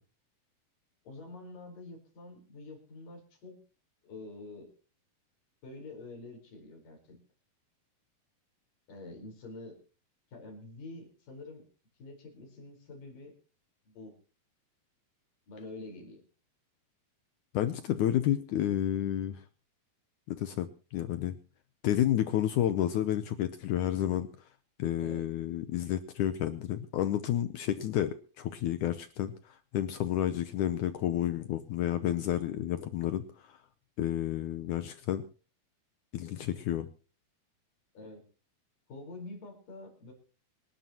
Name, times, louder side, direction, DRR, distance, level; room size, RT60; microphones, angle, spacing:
voice 1, 1.0-3.6 4.0-4.7 5.6-7.2 8.9-9.8 10.3-11.6 12.0-13.3 13.9-14.2 15.5-16.2 25.0-25.3 37.9-38.2 38.9-40.1, left 2 dB, 60° left, 2 dB, 6.1 m, -47 dB
voice 2, 17.5-19.4 20.3-21.4 21.8-24.3 24.8-33.6 34.0-35.2 36.1-36.9, left 11 dB, 80° left, 11 dB, 1.8 m, -30 dB
26.0 x 12.0 x 3.0 m, 0.37 s
omnidirectional pair, 4.4 m